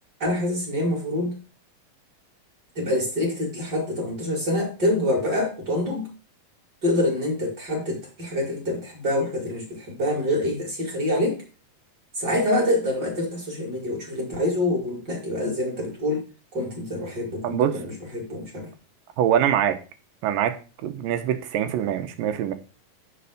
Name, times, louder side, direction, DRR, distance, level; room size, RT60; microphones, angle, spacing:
voice 1, 0.2-1.3 2.8-6.1 6.8-11.4 12.1-16.2 16.5-18.7, left 1 dB, 30° right, 2.6 m, -26 dB
voice 2, 17.4-17.8 19.2-19.8 20.2-22.5, right 10 dB, 80° right, 2.5 m, -24 dB
6.9 x 6.0 x 5.0 m
omnidirectional pair, 3.9 m